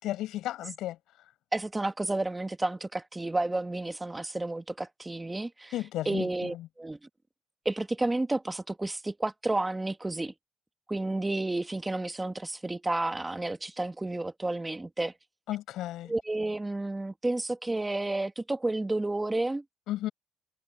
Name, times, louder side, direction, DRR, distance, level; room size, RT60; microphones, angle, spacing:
voice 1, 0.0-1.0 5.7-6.7 15.5-16.1 19.9-20.1, left 14 dB, 80° left, 6.1 m, -34 dB
voice 2, 1.5-5.7 6.0-7.0 7.6-10.3 10.9-15.1 16.1-19.6, right 2 dB, 15° right, 1.5 m, -31 dB
cardioid pair, 85°, 0 cm